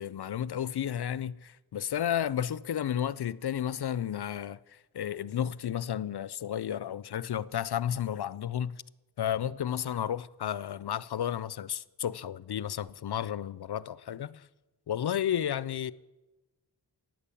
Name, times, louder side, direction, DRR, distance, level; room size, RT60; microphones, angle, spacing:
voice 1, 0.0-8.8 9.2-14.4 14.9-15.9, left 10 dB, 70° left, 0.5 m, -32 dB
11.0 x 9.0 x 8.4 m
wide cardioid pair, 45°, 40 cm